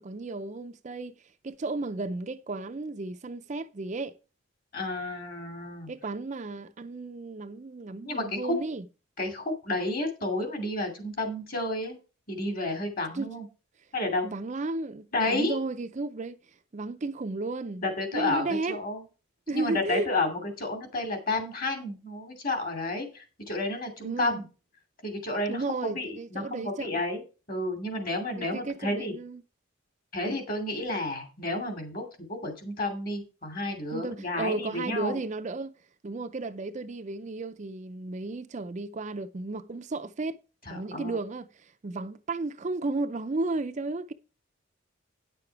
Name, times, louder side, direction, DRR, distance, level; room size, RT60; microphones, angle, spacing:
voice 1, 0.0-4.2 5.9-8.9 13.1-13.3 14.2-17.8 18.1-18.8 19.5-20.1 24.0-24.4 25.5-27.0 28.4-29.4 33.9-35.8 36.0-40.4 40.7-44.1, right 3 dB, 35° right, 0.4 m, -34 dB
voice 2, 4.7-5.9 8.0-8.6 9.2-12.0 12.3-13.4 13.9-14.3 15.1-15.6 17.8-19.0 19.5-24.4 25.0-27.2 27.5-29.1 30.1-35.2 40.7-41.2, left 2 dB, 45° left, 2.6 m, -31 dB
9.9 x 6.7 x 4.7 m
head